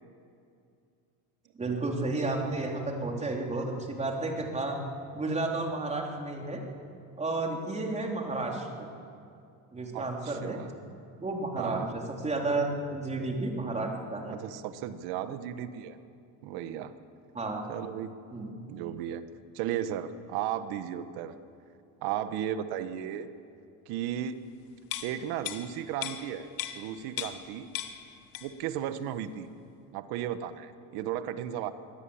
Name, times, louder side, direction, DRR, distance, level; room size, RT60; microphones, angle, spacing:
voice 1, 1.6-4.8 5.1-6.6 7.2-8.9 9.7-10.6 11.2-14.4 17.3-17.6 18.3-18.5, right 2 dB, 15° right, 1 dB, 3.7 m, -32 dB
voice 2, 9.9-10.7 11.6-11.9 14.3-16.0 16.4-16.9 17.7-18.1 18.7-19.2 19.5-21.3 22.0-23.3 23.9-24.3 25.0-26.5 26.7-27.7 28.4-29.5 29.9-31.7, right 10 dB, 75° right, 11 dB, 1.4 m, -35 dB
sound 1, 24.8-27.5 27.7-28.7 29.0-29.2, left 11 dB, 65° left, 1.8 m, -38 dB
24.5 x 17.0 x 8.8 m, 2.5 s
cardioid pair, 125°, 38 cm